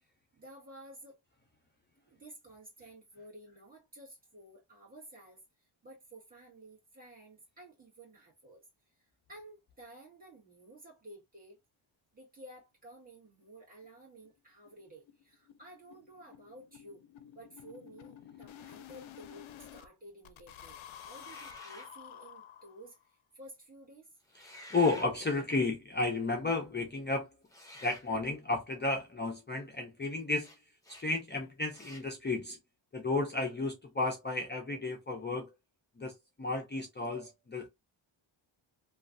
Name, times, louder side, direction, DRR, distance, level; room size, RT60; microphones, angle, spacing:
voice 1, 0.3-1.2 2.1-8.6 9.0-11.6 12.1-17.0 17.3-24.1, right 1 dB, 15° right, 1.5 m, -53 dB
sound 1, 13.0-13.1 13.4-13.5 13.8-13.9 14.2-14.4 14.7-19.9 20.2-23.0, left 10 dB, 70° left, 0.5 m, -51 dB
sound 2, 20.9-21.9 24.2-25.1 27.5-28.1 30.4-30.6 30.8-31.1 31.7-32.1, left 1 dB, 5° left, 0.9 m, -51 dB
voice 2, 24.3-27.3 27.8-30.5 31.0-32.6 32.9-35.5 36.0-37.7, left 3 dB, 20° left, 0.5 m, -33 dB
3.1 x 2.4 x 2.5 m
wide cardioid pair, 145°, 49 cm